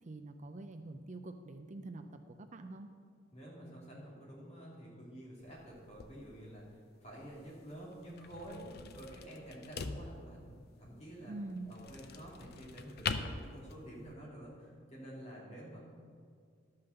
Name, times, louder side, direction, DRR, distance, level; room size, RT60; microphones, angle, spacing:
voice 1, 0.0-2.9 11.2-11.7, right 2 dB, 40° right, 7 dB, 0.5 m, -45 dB
voice 2, 3.3-6.7 7.0-11.3 11.7-15.8, right 1 dB, 35° left, -5 dB, 2.9 m, -49 dB
sound 1, 5.4-14.1, left 4 dB, 55° left, 0.6 m, -44 dB
12.5 x 5.7 x 6.6 m, 2.2 s
head